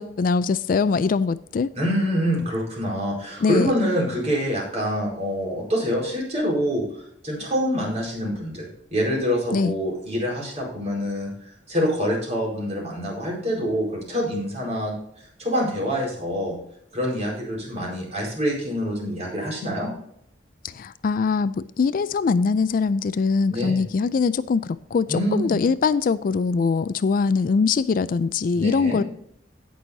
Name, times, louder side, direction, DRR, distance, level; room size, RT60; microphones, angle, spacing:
voice 1, 0.0-1.7 3.4-3.7 9.5-9.7 20.6-29.0, left 5 dB, 50° left, 0.3 m, -22 dB
voice 2, 1.7-6.8 7.2-11.3 11.7-14.9 15.4-16.5 16.9-19.9 23.5-23.8 25.1-25.6 28.5-29.0, equal, 40° right, 4.5 m, -26 dB
17.0 x 6.3 x 2.7 m
head